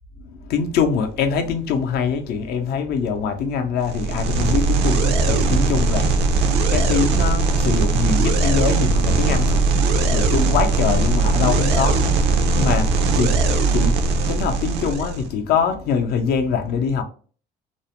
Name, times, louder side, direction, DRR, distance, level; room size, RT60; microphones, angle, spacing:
voice 1, 0.2-17.0, left 6 dB, 70° left, 0.5 m, -24 dB
sound 1, 3.8-15.3, right 3 dB, 80° right, 0.4 m, -19 dB
2.5 x 2.0 x 2.8 m
cardioid pair, 110°, 17 cm